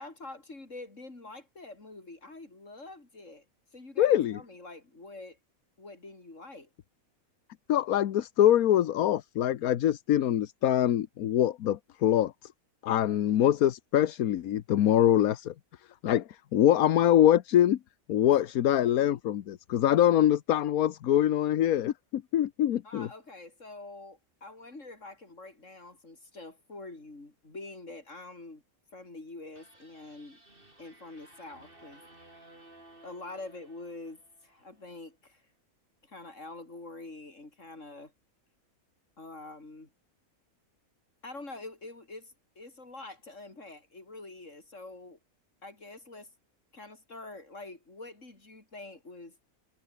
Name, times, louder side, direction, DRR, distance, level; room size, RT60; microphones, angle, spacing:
voice 1, 0.0-3.4 3.7-5.4 5.8-6.7 18.3-18.4 22.8-28.6 28.9-30.4 30.8-32.0 33.0-35.4 36.0-38.1 39.2-39.9 41.2-45.2 45.6-46.3 46.7-49.4, left 2 dB, 60° left, 4.9 m, -46 dB
voice 2, 4.0-4.4 7.7-12.3 12.8-15.5 16.0-17.8 18.1-23.1, left 11 dB, 80° left, 1.3 m, -24 dB
sound 1, 29.5-34.8, right 2 dB, 40° right, 5.2 m, -57 dB
omnidirectional pair, 1.5 m